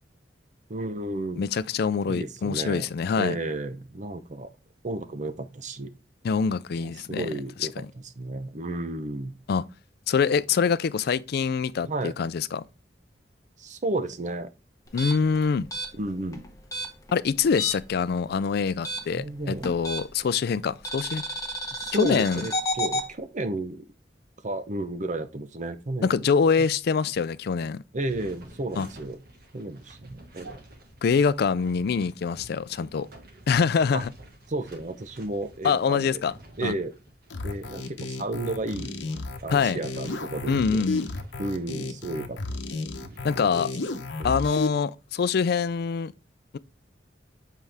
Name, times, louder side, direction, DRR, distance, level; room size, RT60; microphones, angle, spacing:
voice 1, 0.7-1.5 2.1-2.9 3.2-4.5 4.8-5.9 6.8-9.3 11.8-12.1 13.6-14.5 16.0-16.5 19.1-19.7 21.7-23.9 24.4-26.2 27.9-29.2 29.5-30.6 33.9-34.0 34.5-36.2 36.6-36.9 37.4-38.9 39.4-40.9 41.4-42.6 43.0-43.5 44.2-44.4, right 2 dB, 45° right, 0.7 m, -33 dB
voice 2, 1.4-3.4 6.2-7.3 9.5-9.6 10.1-12.6 14.9-15.7 17.1-21.2 22.0-22.4 26.0-27.8 28.8-28.9 31.0-33.1 33.5-34.1 35.6-36.3 36.6-36.7 39.5-39.8 40.5-41.0 43.2-43.7 44.2-46.1, left 5 dB, 60° left, 0.4 m, -24 dB
sound 1, 14.9-18.0 18.2-20.3 20.8-23.1, equal, 20° left, 1.4 m, -32 dB
sound 2, 28.1-43.3, right 1 dB, 60° right, 1.7 m, -51 dB
sound 3, 37.3-44.7, left 3 dB, 85° left, 0.9 m, -33 dB
7.7 x 4.6 x 3.4 m
head